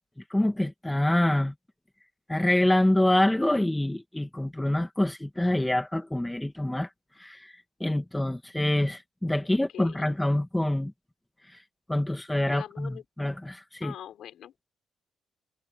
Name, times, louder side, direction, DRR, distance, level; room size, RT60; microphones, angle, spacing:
voice 1, 0.3-1.5 2.3-6.9 7.2-10.9 11.5-11.6 11.9-13.9, left 1 dB, 10° left, 2.1 m, -26 dB
voice 2, 9.4-10.1 12.4-13.0 13.8-14.6, left 10 dB, 70° left, 6.1 m, -43 dB
cardioid pair, 90°, 0 cm